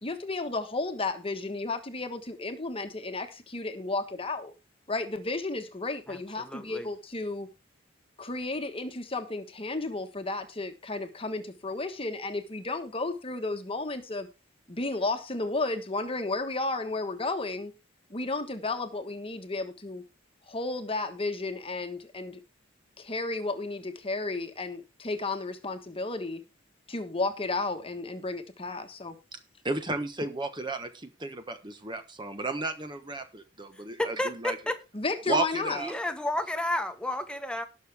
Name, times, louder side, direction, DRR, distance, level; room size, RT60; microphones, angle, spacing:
voice 1, 0.0-4.5 4.9-7.5 8.2-14.3 14.7-17.7 18.1-20.0 20.5-22.4 23.0-26.4 26.9-29.2 34.9-35.8, left 3 dB, 30° left, 1.3 m, -33 dB
voice 2, 6.1-6.9 34.0-34.8 35.8-37.6, left 1 dB, 5° left, 1.4 m, -31 dB
voice 3, 29.6-34.6 35.3-35.9, right 2 dB, 25° right, 1.2 m, -33 dB
18.5 x 6.6 x 3.5 m
head